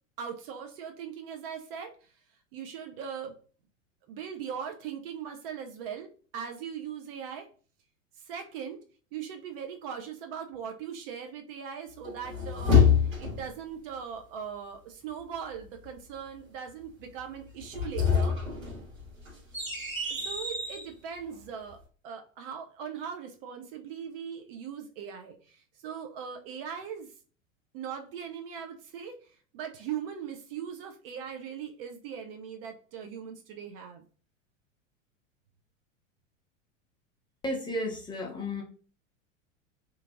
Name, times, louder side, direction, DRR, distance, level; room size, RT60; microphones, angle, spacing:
voice 1, 0.2-2.1 2.5-3.4 4.1-7.5 8.2-8.8 9.1-18.4 20.1-27.1 27.7-34.0, right 7 dB, 45° right, 5 dB, 0.5 m, -40 dB
sound 1, 12.0-13.5 17.6-20.9, left 6 dB, 85° right, 1.4 m, -26 dB
voice 2, 37.4-38.6, left 1 dB, 10° left, -1 dB, 0.6 m, -33 dB
2.9 x 2.4 x 2.4 m, 0.40 s
hypercardioid pair, 90°, 40 cm